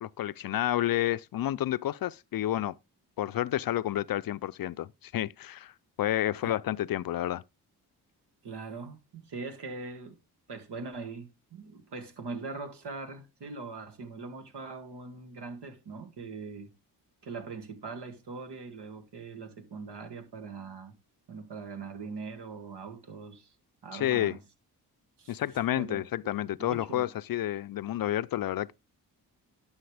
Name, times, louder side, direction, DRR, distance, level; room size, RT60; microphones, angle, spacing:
voice 1, 0.0-2.8 3.2-5.7 6.0-7.4 23.9-24.4 25.3-28.7, left 13 dB, 55° left, 0.5 m, -30 dB
voice 2, 8.4-10.2 10.5-16.7 17.2-20.9 21.3-23.5 23.8-24.4 25.2-25.5 25.8-26.0 26.6-27.1, right 4 dB, 70° right, 2.1 m, -41 dB
11.5 x 5.7 x 3.4 m
supercardioid pair, 50°, 42 cm